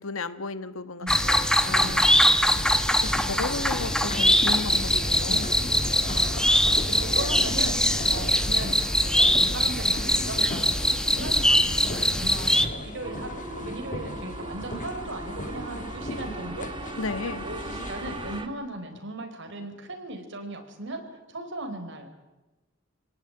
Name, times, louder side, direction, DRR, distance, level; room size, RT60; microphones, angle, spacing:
voice 1, 0.0-2.1 3.0-5.5 17.0-17.4, left 3 dB, 80° left, 13 dB, 1.3 m, -34 dB
voice 2, 1.0-2.8 3.6-3.8 5.3-5.5 6.1-7.8 8.1-16.7 17.2-21.0 21.3-22.1, right 2 dB, 60° right, 5 dB, 4.5 m, -38 dB
sound 1, 1.1-12.6, left 1 dB, 5° left, 1.2 m, -22 dB
sound 2, 1.7-18.4, left 1 dB, 40° left, 1.7 m, -36 dB
sound 3, 13.0-18.5, right 3 dB, 25° right, 1.4 m, -40 dB
26.0 x 18.0 x 8.9 m, 1.1 s
head